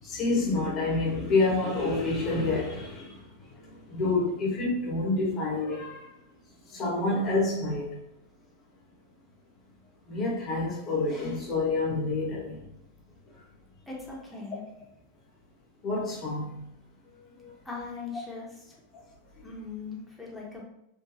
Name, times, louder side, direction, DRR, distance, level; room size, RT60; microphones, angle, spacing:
voice 1, 0.0-3.2 3.7-6.1 6.7-8.0 10.1-12.6 15.8-16.7 17.4-17.5, left 3 dB, 30° left, -3 dB, 0.5 m, -28 dB
voice 2, 13.9-14.6 17.6-18.8 19.4-20.6, left 4 dB, 5° left, -4 dB, 0.8 m, -40 dB
3.2 x 2.2 x 2.3 m, 0.79 s
figure-of-eight pair, 90°, 0 cm